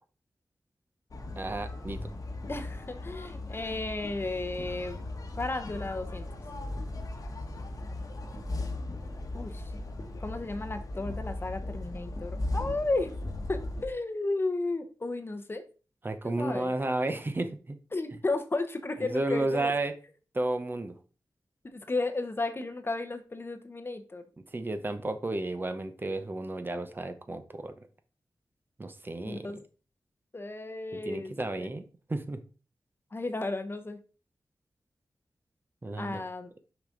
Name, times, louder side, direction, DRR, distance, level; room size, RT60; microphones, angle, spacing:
sound 1, 1.1-13.9, left 2 dB, 55° left, 1.2 m, -37 dB
voice 1, 1.4-2.0 16.0-17.8 19.0-19.9 20.3-20.9 24.5-27.9 28.8-29.5 30.9-31.8 32.1-32.4 35.8-36.2, right 2 dB, 30° right, 9 dB, 0.7 m, -32 dB
voice 2, 2.5-5.0 5.4-6.3 9.3-9.7 10.2-13.1 13.5-15.6 16.2-16.7 17.9-19.7 21.6-24.2 29.2-29.6 30.3-31.3 33.1-34.0 36.0-36.6, left 2 dB, 35° left, 9 dB, 0.8 m, -33 dB
6.2 x 5.0 x 3.8 m, 0.35 s
wide cardioid pair, 90°, 7 cm